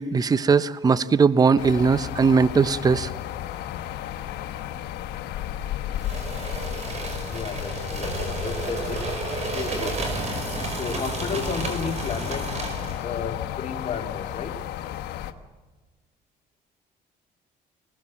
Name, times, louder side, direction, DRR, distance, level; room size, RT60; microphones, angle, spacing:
voice 1, 0.0-3.1, right 5 dB, 20° right, 15 dB, 0.7 m, -19 dB
sound 1, 1.6-15.3, left 11 dB, 85° left, 1.3 m, -33 dB
sound 2, 5.9-13.0, right 3 dB, 40° right, 5.4 m, -32 dB
voice 2, 7.3-10.2 10.7-12.5 13.0-14.6, left 6 dB, 40° left, 2 dB, 2.8 m, -33 dB
25.0 x 18.0 x 7.5 m, 1.3 s
cardioid pair, 110°, 17 cm